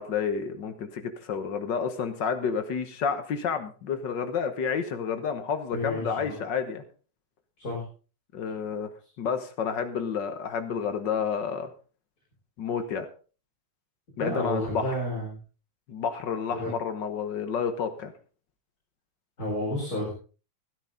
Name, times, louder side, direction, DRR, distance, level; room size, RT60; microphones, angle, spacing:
voice 1, 0.0-6.8 8.3-8.9 9.2-11.7 12.6-13.1 14.2-14.9 15.9-18.1, left 6 dB, 55° left, 9 dB, 1.3 m, -30 dB
voice 2, 5.7-6.4 7.6-7.8 14.2-15.4 16.5-16.7 19.4-20.1, equal, 30° left, -4 dB, 4.9 m, -31 dB
14.5 x 13.0 x 3.8 m, 0.37 s
omnidirectional pair, 3.4 m